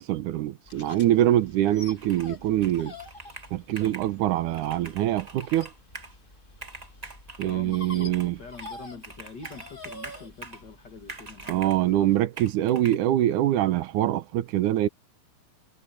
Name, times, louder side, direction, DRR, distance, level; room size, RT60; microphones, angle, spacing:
voice 1, 0.0-2.9 3.5-5.7 7.4-8.4 11.5-14.9, right 13 dB, 85° right, 2.5 m, -24 dB
sound 1, 0.7-12.2, left 2 dB, 20° left, 2.2 m, -47 dB
Computer keyboard, 2.0-2.4 2.6-4.1 4.5-6.2 6.5-7.6 8.1-8.8 9.0-10.7 11.1-11.8 12.4-13.0, right 3 dB, 25° right, 0.8 m, -44 dB
voice 2, 7.4-12.1, left 5 dB, 35° left, 2.7 m, -44 dB
omnidirectional pair, 3.4 m